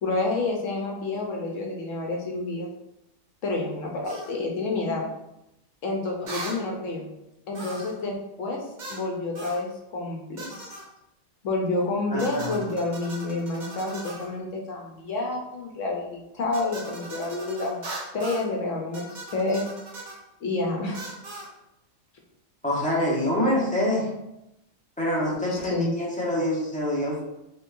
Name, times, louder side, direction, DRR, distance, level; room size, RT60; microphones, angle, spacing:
voice 1, 0.0-2.7 3.4-5.0 5.8-7.0 7.5-8.6 8.9-10.7 11.4-17.8 18.1-19.7 20.4-21.0 25.3-25.9, left 2 dB, 70° left, 0 dB, 1.1 m, -29 dB
sound 1, 4.0-4.3 6.3-6.6 7.5-8.0 8.8-9.1 9.4-9.6 10.4-10.9 12.2-14.3 16.5-18.5 18.9-20.2 20.9-21.5, right 2 dB, 45° right, 0.7 m, -39 dB
voice 2, 12.1-12.6 22.6-24.1 25.0-27.2, left 1 dB, 5° left, -6 dB, 1.0 m, -25 dB
4.5 x 3.1 x 2.6 m, 0.88 s
omnidirectional pair, 1.4 m